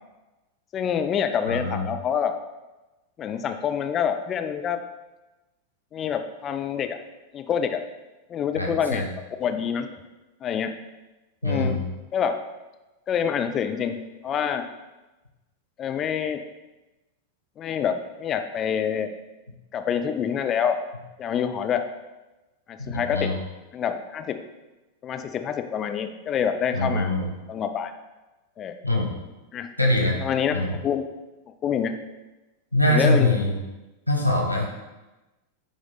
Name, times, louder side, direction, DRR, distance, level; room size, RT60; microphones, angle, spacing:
voice 1, 0.7-2.3 3.2-4.8 5.9-7.0 7.3-7.8 8.3-9.1 9.4-9.9 10.4-10.7 11.4-11.8 12.1-12.4 13.1-14.0 14.2-14.7 15.8-16.4 17.6-19.1 19.7-20.8 21.2-21.9 22.7-23.3 23.7-24.4 25.0-27.1 27.5-27.9 28.6-28.7 29.5-29.7 30.2-30.6 30.8-31.1 31.6-31.9 32.9-33.3, left 8 dB, 30° left, 7 dB, 0.5 m, -26 dB
voice 2, 1.5-1.9 8.5-9.1 11.4-11.8 22.8-23.4 26.7-27.3 28.8-29.1 29.8-30.2 30.5-30.7 32.7-33.5 34.1-34.6, left 1 dB, 90° right, 0 dB, 1.1 m, -23 dB
9.1 x 3.1 x 4.0 m, 1.1 s
figure-of-eight pair, 90°, 0 cm